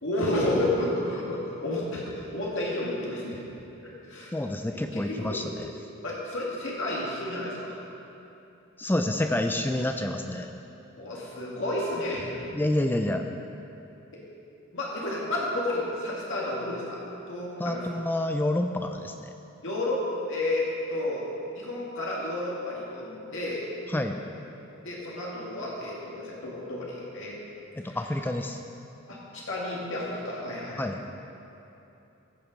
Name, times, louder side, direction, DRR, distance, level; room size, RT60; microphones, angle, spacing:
voice 1, 0.0-3.4 3.8-4.3 4.9-5.4 6.0-7.8 11.0-12.4 14.7-17.0 17.3-17.9 19.6-21.3 21.5-23.7 24.8-27.4 27.8-28.0 29.1-30.8, left 1 dB, 60° left, -5 dB, 1.9 m, -31 dB
voice 2, 4.3-5.7 8.8-10.5 12.5-13.2 17.6-19.3 23.9-24.2 27.8-28.6 30.8-31.0, left 1 dB, 10° left, 5 dB, 0.4 m, -28 dB
14.5 x 7.4 x 5.2 m, 2.9 s
head